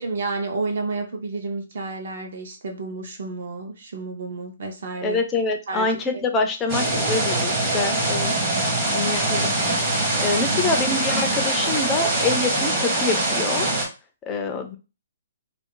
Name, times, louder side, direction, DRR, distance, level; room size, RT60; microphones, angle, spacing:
voice 1, 0.0-5.2 5.7-6.2, right 3 dB, 50° right, 4 dB, 0.6 m, -31 dB
voice 2, 5.0-8.3 8.9-9.5 10.2-13.7 14.2-14.8, left 3 dB, 10° left, 4 dB, 0.4 m, -25 dB
sound 1, 6.7-13.9, right 1 dB, 20° right, 0.8 m, -23 dB
2.4 x 2.3 x 3.7 m, 0.30 s
hypercardioid pair, 175°, 0 cm